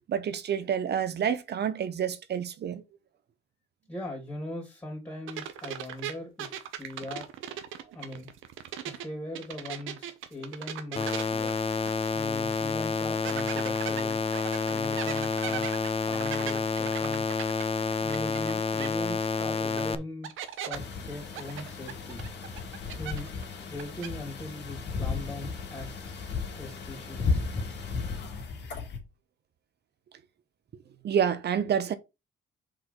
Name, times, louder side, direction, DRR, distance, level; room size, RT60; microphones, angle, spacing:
voice 1, 0.1-2.8 31.0-32.0, right 8 dB, 55° right, 1.0 m, -28 dB
voice 2, 3.9-7.3 7.9-8.3 8.8-11.5 12.1-14.2 14.7-15.7 16.1-17.3 18.0-22.2 23.0-23.3 23.6-27.4, left 1 dB, 15° left, 2.9 m, -40 dB
sound 1, 5.3-9.1 9.3-12.2 12.5-12.6 13.2-18.5 18.8-18.9 19.8-19.9 20.2-20.8 21.4-23.4 23.7-24.1, right 10 dB, 85° right, 1.0 m, -38 dB
sound 2, 11.0-20.0, left 4 dB, 30° left, 0.7 m, -29 dB
sound 3, 20.7-29.0, left 4 dB, 60° left, 2.3 m, -35 dB
5.0 x 4.1 x 5.7 m
cardioid pair, 90°, 20 cm